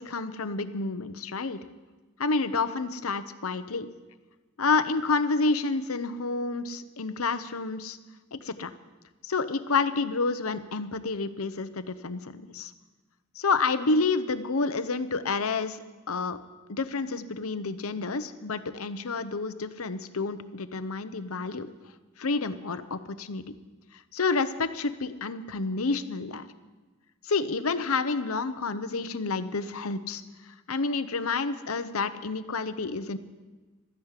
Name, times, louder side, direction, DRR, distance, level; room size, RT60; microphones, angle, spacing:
voice 1, 0.0-1.6 2.2-3.9 4.6-8.0 8.3-8.7 9.2-12.7 13.3-15.8 16.1-16.4 16.7-21.7 22.2-23.4 24.1-26.5 27.2-30.2 30.7-33.2, left 4 dB, 85° left, 11 dB, 0.9 m, -29 dB
13.5 x 10.5 x 8.3 m, 1.2 s
head